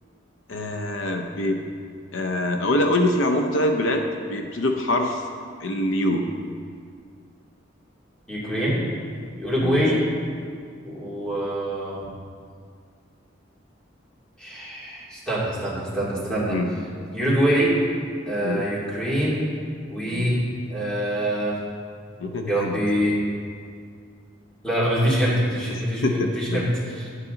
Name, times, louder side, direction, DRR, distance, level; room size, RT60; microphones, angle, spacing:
voice 1, 0.5-1.6 2.1-5.2 5.6-6.3 9.6-10.0 16.5-16.7 18.4-18.7 20.1-20.3 22.2-22.8 25.7-26.6, left 1 dB, 80° left, 4 dB, 0.7 m, -24 dB
voice 2, 8.3-8.8 9.4-10.0 10.8-12.1 14.4-16.6 17.1-17.8 18.3-19.5 19.9-20.4 20.7-21.6 22.5-23.2 24.6-27.1, equal, 5° left, -8 dB, 2.6 m, -24 dB
11.0 x 8.4 x 3.9 m, 2.1 s
head